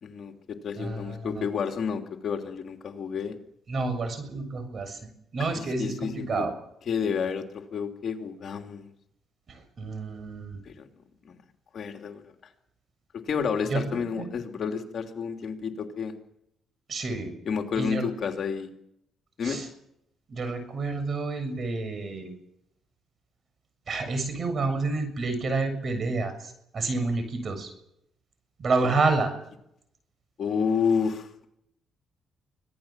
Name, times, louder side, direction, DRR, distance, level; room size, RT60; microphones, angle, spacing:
voice 1, 0.0-3.3 5.8-6.4 6.9-8.9 10.6-10.9 11.2-11.4 11.7-12.2 13.1-16.1 17.5-18.7 19.4-19.6 30.4-31.5, left 6 dB, 55° left, 4 dB, 3.1 m, -30 dB
voice 2, 0.8-1.5 3.7-5.0 5.3-5.9 6.3-6.5 9.5-10.6 13.7-13.9 14.1-14.3 16.9-17.3 17.8-18.1 19.4-19.7 20.3-22.3 23.9-27.7 28.6-29.3, right 3 dB, 50° right, 9 dB, 7.1 m, -29 dB
25.0 x 17.5 x 7.5 m, 0.76 s
cardioid pair, 90°, 0 cm